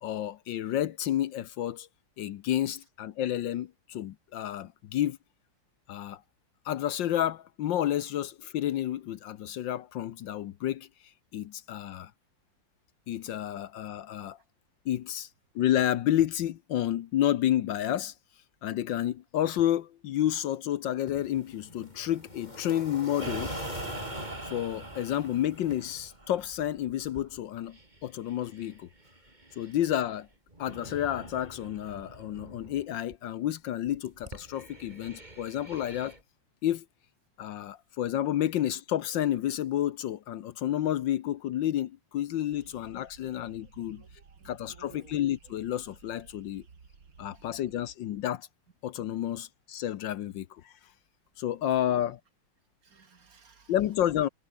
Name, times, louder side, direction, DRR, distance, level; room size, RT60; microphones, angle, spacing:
voice 1, 0.0-1.9 2.2-5.2 5.9-6.2 6.6-10.9 11.3-12.1 13.1-14.4 14.8-15.3 15.5-18.1 18.6-23.5 24.4-28.9 29.6-30.3 30.6-36.2 36.6-36.8 37.4-44.0 44.4-46.6 47.2-48.5 48.8-50.7 51.4-52.2 53.7-54.3, left 12 dB, 70° left, 1.5 m, -30 dB
sound 1, 21.1-26.1, left 1 dB, 20° left, 4.5 m, -45 dB
sound 2, 23.2-30.2 30.5-32.8 33.1-33.2 33.9-36.2, right 1 dB, 20° right, 4.3 m, -44 dB
sound 3, 42.5-48.0, right 5 dB, 65° right, 3.4 m, -56 dB
voice 2, 43.8-45.2 52.8-53.7, right 5 dB, 45° right, 2.2 m, -57 dB
omnidirectional pair, 2.2 m